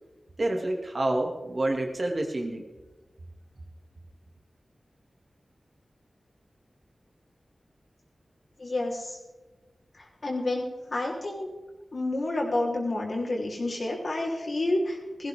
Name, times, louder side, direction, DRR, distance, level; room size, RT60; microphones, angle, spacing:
voice 1, 0.4-2.6, right 1 dB, 45° right, 2 dB, 2.6 m, -28 dB
voice 2, 8.6-9.2 9.9-10.6 10.9-11.5 11.9-15.3, left 2 dB, 60° left, -2 dB, 3.9 m, -29 dB
17.5 x 15.5 x 3.8 m, 1.1 s
wide cardioid pair, 75°, 0 cm